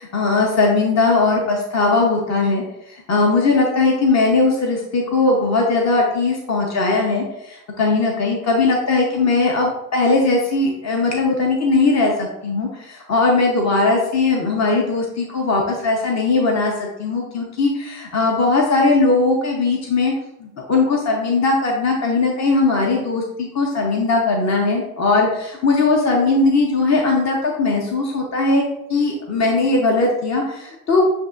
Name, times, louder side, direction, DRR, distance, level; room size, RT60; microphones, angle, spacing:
voice 1, 0.0-20.1 20.4-28.6 28.9-31.0, left 3 dB, 40° left, 0 dB, 1.0 m, -19 dB
7.8 x 2.7 x 2.5 m, 0.88 s
hypercardioid pair, 40°, 44 cm